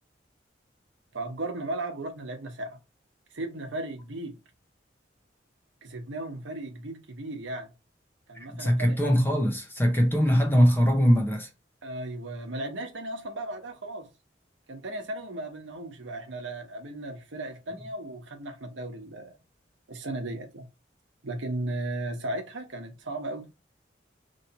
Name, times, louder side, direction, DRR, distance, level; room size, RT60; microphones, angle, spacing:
voice 1, 1.1-2.8 3.3-4.3 5.8-7.7 8.3-9.2 11.8-14.1 14.7-19.4 19.9-20.7 21.2-23.5, right 2 dB, 85° right, 0.9 m, -36 dB
voice 2, 8.5-11.5, equal, 10° left, 0.6 m, -22 dB
3.1 x 2.8 x 4.1 m
head